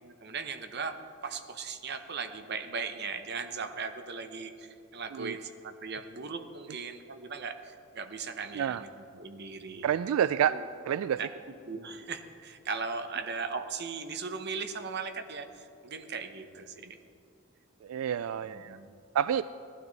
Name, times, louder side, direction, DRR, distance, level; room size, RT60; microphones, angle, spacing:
voice 1, 0.0-9.9 10.5-10.6 11.2-11.3 11.7-17.0 18.4-19.0, right 5 dB, 55° right, 8 dB, 0.9 m, -38 dB
voice 2, 9.8-10.6 10.9-11.2 17.8-18.8 19.1-19.4, right 9 dB, 90° right, 14 dB, 0.3 m, -28 dB
18.5 x 12.5 x 4.0 m, 2.5 s
head